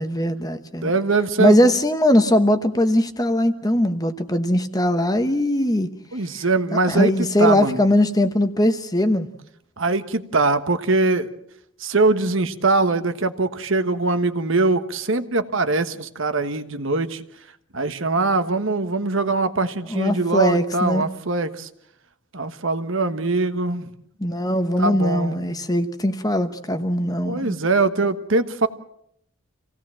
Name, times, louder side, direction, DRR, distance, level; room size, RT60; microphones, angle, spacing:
voice 1, 0.0-0.9 1.4-5.9 6.9-9.3 19.9-21.1 24.2-27.5, left 1 dB, 15° left, 1.1 m, -20 dB
voice 2, 0.8-1.7 6.1-7.8 9.8-11.3 11.8-17.2 17.7-21.7 22.3-23.9 24.8-25.6 27.2-28.7, right 3 dB, 60° right, 1.3 m, -22 dB
27.0 x 17.5 x 7.5 m
head